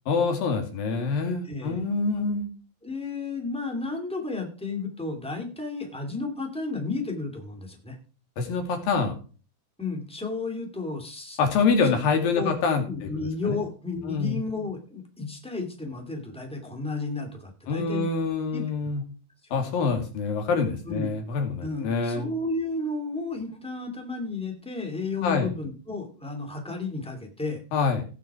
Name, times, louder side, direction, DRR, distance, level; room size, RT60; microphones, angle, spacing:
voice 1, 0.1-2.5 8.4-9.1 11.4-13.6 14.1-14.4 17.7-19.0 19.5-22.3 25.2-25.5 27.7-28.0, left 4 dB, 70° left, 4 dB, 4.1 m, -26 dB
voice 2, 1.4-1.8 2.8-8.0 9.8-11.4 12.3-12.5 12.9-18.1 18.5-18.6 19.4-19.5 20.8-21.1 21.6-27.6, left 3 dB, ahead, 3 dB, 1.8 m, -32 dB
17.5 x 6.3 x 4.9 m, 0.37 s
omnidirectional pair, 4.3 m